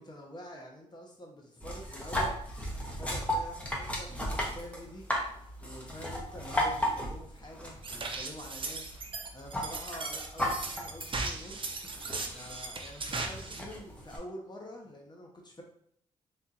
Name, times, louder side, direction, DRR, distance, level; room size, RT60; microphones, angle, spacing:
voice 1, 0.0-2.3 3.0-5.1 5.6-8.9 9.3-11.8 12.3-15.6, equal, 35° left, 0 dB, 1.1 m, -47 dB
sound 1, 1.6-14.2, equal, 10° left, 1.0 m, -36 dB
sound 2, 7.8-13.6, right 3 dB, 40° right, 0.5 m, -38 dB
3.4 x 2.9 x 2.6 m, 0.68 s
cardioid pair, 55°, 13 cm